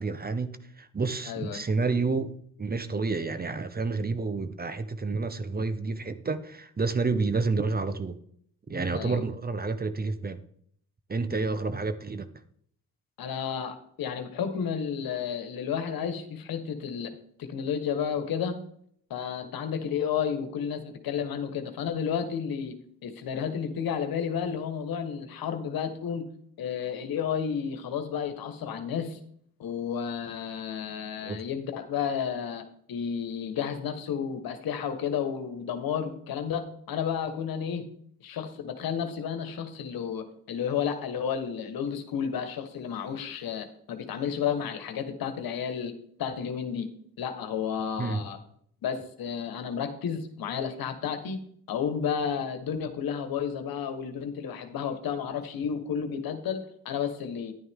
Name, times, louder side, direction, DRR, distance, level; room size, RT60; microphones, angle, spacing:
voice 1, 0.0-2.3 2.6-8.2 8.7-10.4 11.1-12.3 31.2-31.4 48.0-48.2, right 4 dB, 25° right, 0.9 m, -29 dB
voice 2, 1.2-1.6 8.9-9.2 13.2-17.1 17.4-18.5 19.1-22.7 23.0-26.3 26.6-29.2 29.6-32.6 32.9-37.9 38.2-45.9 46.2-46.9 47.2-48.4 48.8-51.4 51.7-57.5, left 7 dB, 70° left, 1.5 m, -32 dB
11.0 x 9.6 x 3.7 m
cardioid pair, 75°, 36 cm